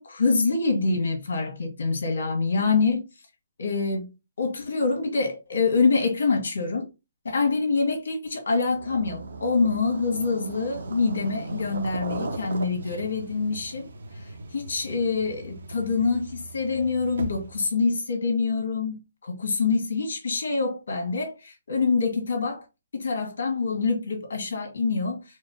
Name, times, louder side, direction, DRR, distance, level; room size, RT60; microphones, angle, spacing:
voice 1, 0.0-3.1 3.6-4.1 4.4-6.9 7.2-13.9 14.2-22.6 22.9-25.2, left 4 dB, 75° left, 1.6 m, -25 dB
sound 1, 8.5-17.7, right 2 dB, 65° right, 0.8 m, -38 dB
4.5 x 2.1 x 4.0 m
hypercardioid pair, 180°, 0 cm